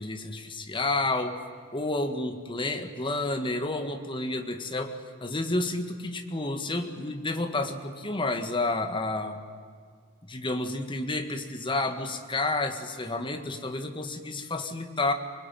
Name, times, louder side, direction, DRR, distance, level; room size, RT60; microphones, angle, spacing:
voice 1, 0.0-1.4 1.7-5.0 5.2-9.4 10.2-15.1, left 2 dB, 25° left, 6 dB, 1.8 m, -30 dB
24.5 x 21.5 x 9.2 m, 2.1 s
head